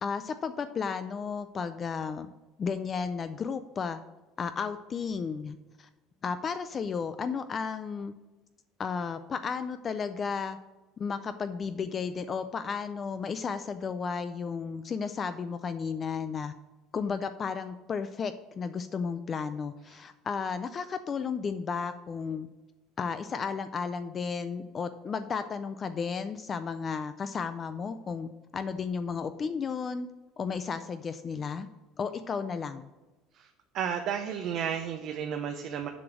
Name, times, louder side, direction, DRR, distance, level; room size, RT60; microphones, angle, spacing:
voice 1, 0.0-2.3 2.6-4.0 4.4-5.9 6.2-8.1 8.8-10.6 11.0-16.5 16.9-22.5 23.0-30.1 30.4-31.7 32.0-32.9, left 5 dB, 25° left, 11 dB, 0.3 m, -33 dB
voice 2, 33.7-35.9, right 8 dB, 50° right, 4 dB, 0.7 m, -32 dB
7.0 x 5.1 x 6.1 m, 1.1 s
cardioid pair, 145°, 0 cm